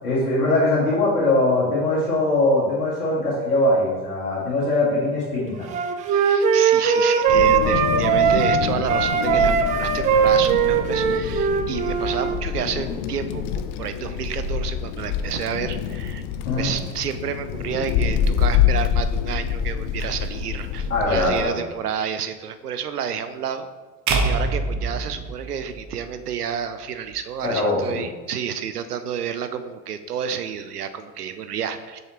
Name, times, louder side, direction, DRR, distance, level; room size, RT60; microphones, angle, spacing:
voice 1, 0.0-5.7 16.4-16.7 20.9-21.6 27.4-28.0, left 2 dB, 75° left, -7 dB, 2.0 m, -21 dB
Wind instrument woodwind instrument, 5.7-8.6 8.9-12.4, right 7 dB, 20° right, 0.3 m, -20 dB
voice 2, 6.1-16.2 16.5-23.7 24.2-32.0, right 8 dB, 80° right, 10 dB, 0.6 m, -30 dB
Wind, 7.3-21.5, left 8 dB, 50° left, 0.6 m, -26 dB
sound 1, 24.1-26.3, right 3 dB, 40° right, 0.9 m, -25 dB
7.3 x 5.5 x 3.0 m, 1.3 s
figure-of-eight pair, 70°, 45 cm